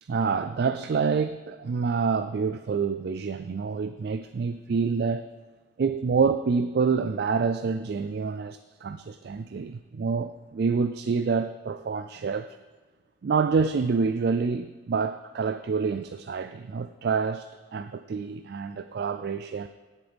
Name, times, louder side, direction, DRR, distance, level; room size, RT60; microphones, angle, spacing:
voice 1, 0.0-5.3 5.8-12.5 13.2-19.7, right 5 dB, 55° right, 10 dB, 0.4 m, -27 dB
17.5 x 7.4 x 3.5 m, 1.4 s
head